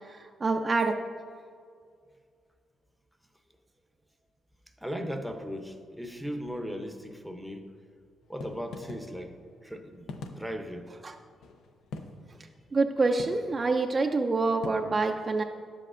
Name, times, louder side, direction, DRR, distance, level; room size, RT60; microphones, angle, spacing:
voice 1, 0.1-0.9 11.0-11.1 12.7-15.4, right 3 dB, 30° right, 4 dB, 0.4 m, -26 dB
voice 2, 4.8-7.7 8.3-9.3 9.6-10.9, equal, ahead, 5 dB, 0.7 m, -37 dB
sound 1, 8.2-14.7, left 3 dB, 85° left, 0.5 m, -44 dB
10.5 x 7.7 x 2.5 m, 2.1 s
cardioid pair, 105°, 0 cm